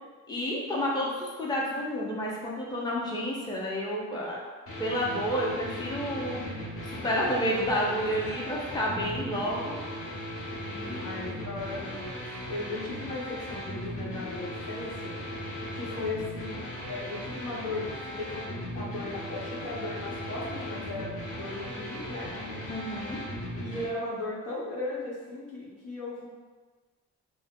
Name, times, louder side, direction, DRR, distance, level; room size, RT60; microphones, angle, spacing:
voice 1, 0.3-4.4 4.8-9.8 10.7-11.0 22.7-23.2, equal, 15° left, -4 dB, 0.6 m, -30 dB
sound 1, 4.7-23.9, equal, 50° left, 0.8 m, -38 dB
voice 2, 10.9-15.2 15.7-16.6 16.9-22.3 23.6-26.3, left 2 dB, 85° left, -6 dB, 1.0 m, -37 dB
2.6 x 2.0 x 3.6 m, 1.4 s
cardioid pair, 90°, 30 cm